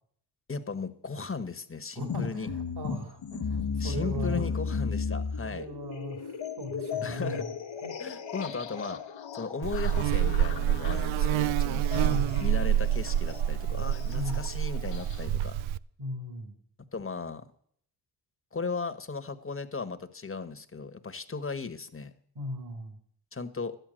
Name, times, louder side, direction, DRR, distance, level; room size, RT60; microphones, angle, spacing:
voice 1, 0.5-2.5 3.8-5.7 7.0-7.4 8.0-9.0 9.3-15.6 16.9-17.4 18.5-22.1 23.3-23.7, left 4 dB, 25° left, 10 dB, 1.4 m, -36 dB
voice 2, 1.9-4.5 5.4-7.5 7.8-7.9 12.1-12.4 14.1-14.4 16.0-16.5 22.3-23.0, equal, 55° right, 6 dB, 2.8 m, -38 dB
sound 1, 2.0-15.3, left 6 dB, 65° left, 1.3 m, -36 dB
Buzz, 9.6-15.8, right 10 dB, 75° right, 0.6 m, -27 dB
12.5 x 9.3 x 6.4 m, 0.63 s
supercardioid pair, 45°, 49 cm